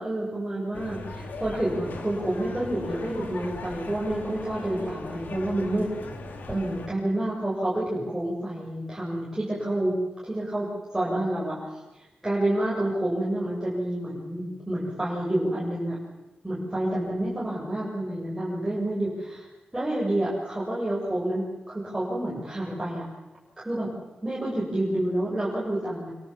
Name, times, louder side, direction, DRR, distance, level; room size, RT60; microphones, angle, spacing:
voice 1, 0.0-5.9 6.5-10.0 10.2-10.7 10.9-11.6 12.2-16.0 16.4-19.5 19.7-23.1 23.6-23.9 24.2-26.1, right 1 dB, 10° right, -6 dB, 7.9 m, -28 dB
sound 1, 0.7-6.9, left 3 dB, 85° left, 3.5 m, -39 dB
26.5 x 25.5 x 7.6 m, 1.0 s
wide cardioid pair, 140°, 3 cm